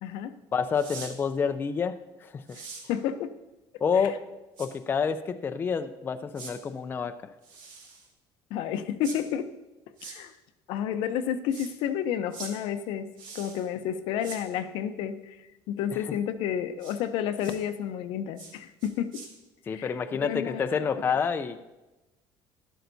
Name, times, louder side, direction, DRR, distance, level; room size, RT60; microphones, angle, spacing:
voice 1, 0.0-0.3 2.5-2.6 2.9-3.3 3.9-4.2 8.5-9.5 10.0-10.3 10.7-19.2 19.7-20.0 20.2-20.9, left 9 dB, 75° left, 10 dB, 0.7 m, -31 dB
voice 2, 0.5-2.4 3.8-4.2 4.6-7.1 19.7-21.6, left 6 dB, 25° left, 9 dB, 0.4 m, -28 dB
sound 1, 0.7-1.1 2.5-2.8 4.6-4.7 6.3-6.5 7.4-8.1 9.0-9.2 10.0-10.2 11.5-11.7 12.3-12.5 13.2-13.7 14.2-14.4 16.8-17.0 17.4-17.6 18.4-18.5 18.8-19.3, right 5 dB, 70° right, 2.5 m, -43 dB
12.0 x 12.0 x 2.7 m, 1.0 s
cardioid pair, 145°, 9 cm